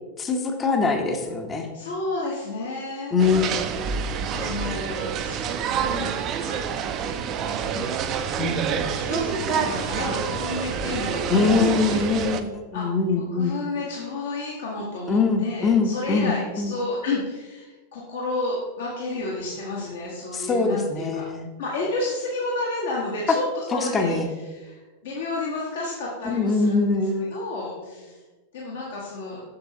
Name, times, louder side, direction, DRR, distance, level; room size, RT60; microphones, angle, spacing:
voice 1, 0.2-1.7 3.1-3.7 8.4-8.8 11.3-13.5 15.1-16.7 20.3-21.5 23.7-24.3 26.2-27.3, left 4 dB, 20° left, 4 dB, 0.7 m, -23 dB
voice 2, 1.7-3.5 4.3-6.6 7.4-8.4 8.9-12.0 12.7-12.9 13.1-21.3 21.6-24.2 24.5-26.9 27.2-28.2 28.5-29.4, left 2 dB, 60° left, -4 dB, 1.1 m, -31 dB
sound 1, 3.2-12.4, right 7 dB, 35° right, 0.4 m, -27 dB
6.7 x 6.3 x 2.7 m, 1.3 s
figure-of-eight pair, 90°, 0 cm